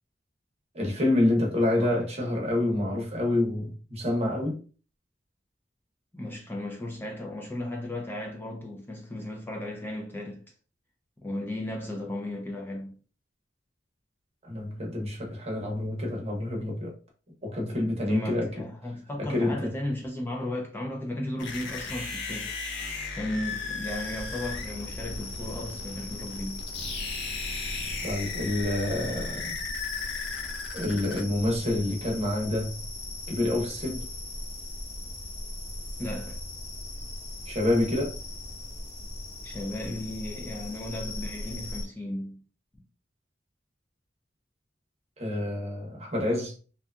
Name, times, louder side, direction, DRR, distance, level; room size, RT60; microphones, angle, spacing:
voice 1, 0.7-4.6 14.4-17.0 17.4-18.5 19.2-19.7 28.0-29.6 30.7-32.8 33.3-34.1 37.5-38.2 45.2-46.5, left 1 dB, 35° right, 0.8 m, -27 dB
voice 2, 6.1-10.4 11.2-12.9 18.1-22.5 23.2-26.6 36.0-36.4 39.4-42.4, left 1 dB, 10° left, 0.4 m, -35 dB
sound 1, 21.4-31.2, left 4 dB, 70° left, 0.6 m, -36 dB
sound 2, 23.8-41.8, left 2 dB, 35° left, 0.9 m, -39 dB
2.7 x 2.3 x 2.3 m
head